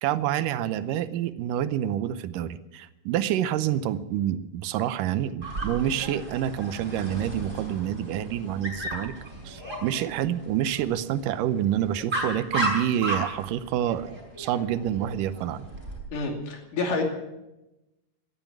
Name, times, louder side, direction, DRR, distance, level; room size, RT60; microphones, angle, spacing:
voice 1, 0.0-9.1 9.5-15.7, right 11 dB, 85° right, 13 dB, 2.4 m, -28 dB
Dog, 5.4-16.0, right 2 dB, 20° right, 5.5 m, -35 dB
voice 2, 16.1-17.0, left 3 dB, 75° left, 2 dB, 4.2 m, -28 dB
18.5 x 13.0 x 6.1 m, 0.95 s
omnidirectional pair, 3.8 m